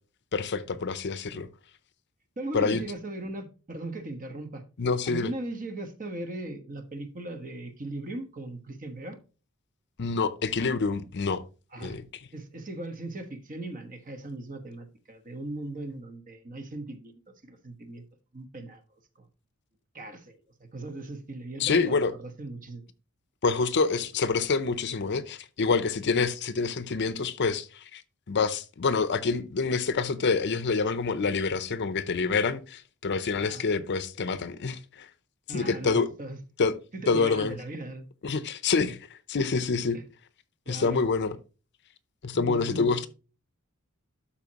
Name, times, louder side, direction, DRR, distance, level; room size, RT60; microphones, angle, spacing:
voice 1, 0.3-1.5 2.5-2.8 4.8-5.3 10.0-11.4 11.8-12.0 21.6-22.1 23.4-28.0 28.3-35.1 35.5-36.1 36.6-36.7 37.1-37.6 38.2-39.0 39.3-40.0 40.7-41.4 42.2-43.1, left 4 dB, 55° left, 0.6 m, -27 dB
voice 2, 2.4-4.6 5.0-9.2 11.7-12.0 12.3-17.1 17.4-18.0 18.3-18.8 19.2-19.3 19.9-20.4 20.7-22.8 33.4-33.6 35.5-36.4 36.9-38.1 39.9-40.0 40.6-41.0 42.3-43.0, right 2 dB, 40° right, 1.2 m, -38 dB
12.0 x 4.3 x 2.9 m
head